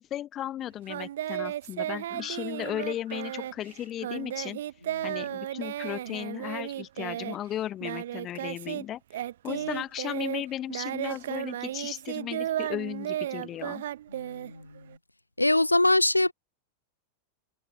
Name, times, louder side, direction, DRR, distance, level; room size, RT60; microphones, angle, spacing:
voice 1, 0.0-4.6 5.0-9.0 9.4-13.8, left 12 dB, 30° left, 1.0 m, -35 dB
Singing, 0.9-8.8 9.1-15.0, right 12 dB, 60° right, 1.2 m, -34 dB
voice 2, 14.1-14.8 15.4-16.3, left 2 dB, 85° left, 0.8 m, -23 dB
figure-of-eight pair, 90°, 0 cm